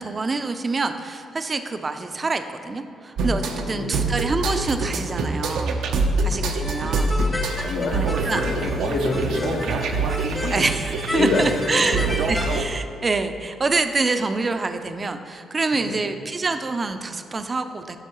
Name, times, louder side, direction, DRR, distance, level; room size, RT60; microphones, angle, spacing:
voice 1, 0.0-5.8 6.2-7.1 7.9-8.4 10.5-18.0, right 3 dB, 30° right, 8 dB, 0.5 m, -26 dB
sound 1, 3.2-12.6, right 3 dB, 80° right, 0.6 m, -25 dB
voice 2, 3.4-4.0 7.6-10.3 11.1-11.5 11.7-12.2 15.7-16.0, left 2 dB, 75° left, 0 dB, 1.3 m, -27 dB
sound 2, 6.6-12.6, left 1 dB, 15° left, 0.7 m, -33 dB
12.5 x 5.6 x 3.0 m, 2.5 s
cardioid pair, 90°, 0 cm